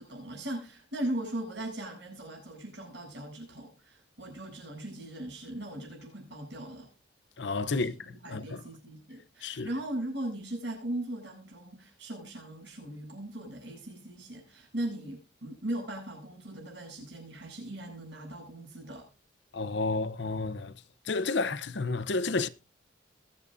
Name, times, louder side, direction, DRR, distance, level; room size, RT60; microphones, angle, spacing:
voice 1, 0.0-6.9 7.7-19.1, right 1 dB, 60° right, 7.9 m, -39 dB
voice 2, 7.4-8.6 9.4-9.7 19.5-20.7 21.1-22.5, left 3 dB, 65° left, 0.7 m, -31 dB
22.0 x 9.0 x 2.6 m
head